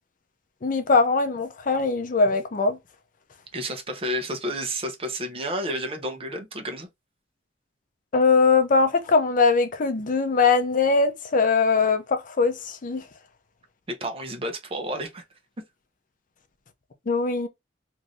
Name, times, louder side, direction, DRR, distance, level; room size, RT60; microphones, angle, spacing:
voice 1, 0.6-2.8 8.1-13.0 17.1-17.5, left 4 dB, 45° left, 0.5 m, -21 dB
voice 2, 3.5-6.9 13.9-15.2, right 1 dB, 30° right, 0.7 m, -31 dB
2.6 x 2.5 x 3.1 m
head